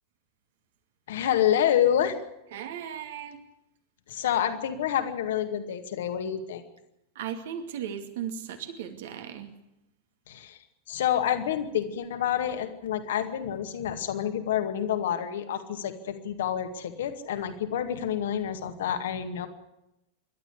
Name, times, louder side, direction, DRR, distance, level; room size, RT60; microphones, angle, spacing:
voice 1, 1.1-2.2 4.1-6.6 10.3-10.6 10.9-19.5, left 10 dB, 60° left, 8 dB, 2.1 m, -28 dB
voice 2, 2.5-3.4 7.2-9.5, right 9 dB, 55° right, 7 dB, 2.4 m, -36 dB
26.5 x 12.5 x 8.4 m, 0.89 s
figure-of-eight pair, 90°, 0 cm